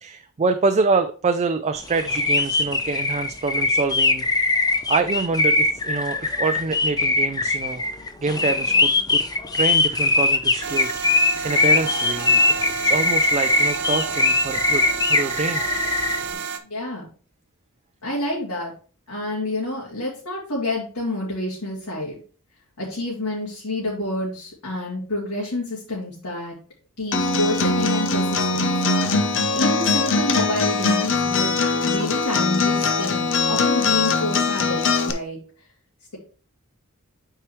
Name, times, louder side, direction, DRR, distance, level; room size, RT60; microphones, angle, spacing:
voice 1, 0.0-4.5 4.9-7.8 8.2-9.2 9.5-15.7, right 4 dB, 30° right, 8 dB, 0.4 m, -26 dB
sound 1, 1.9-16.2, left 3 dB, 15° left, 0.6 m, -21 dB
sound 2, 10.6-16.6, right 6 dB, 55° right, 0.8 m, -30 dB
voice 2, 16.6-17.1 18.0-18.7 19.1-22.2 22.8-26.5 27.0-28.7 29.5-31.5 31.8-35.4, left 1 dB, 85° left, -6 dB, 2.5 m, -28 dB
Acoustic guitar, 27.1-35.1, left 4 dB, 60° left, 0.8 m, -21 dB
9.0 x 4.7 x 3.1 m, 0.39 s
head